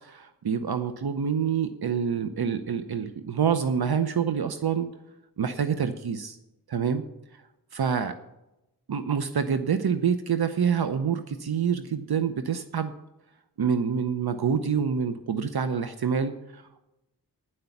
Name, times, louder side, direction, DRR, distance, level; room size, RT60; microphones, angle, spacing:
voice 1, 0.0-4.9 5.4-6.4 6.7-7.0 7.7-8.1 8.9-12.9 13.6-16.8, right 7 dB, 70° right, 10 dB, 0.7 m, -27 dB
10.0 x 7.8 x 7.1 m, 0.93 s
wide cardioid pair, 65°, 40 cm